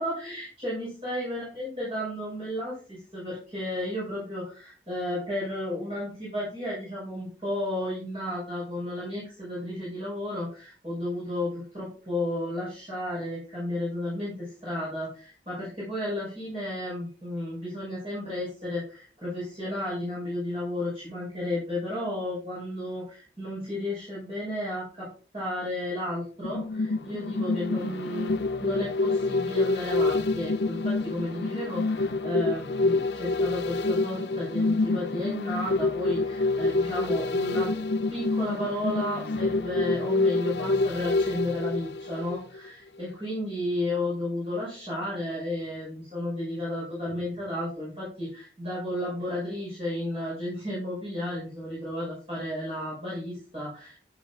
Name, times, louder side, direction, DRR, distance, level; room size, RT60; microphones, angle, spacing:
voice 1, 0.0-25.1 25.3-28.3 28.6-37.8 38.1-54.0, left 1 dB, 35° right, -7 dB, 5.6 m, -33 dB
sound 1, 26.4-42.7 43.0-43.1, left 3 dB, 80° left, 0.6 m, -27 dB
11.0 x 9.7 x 2.4 m, 0.38 s
head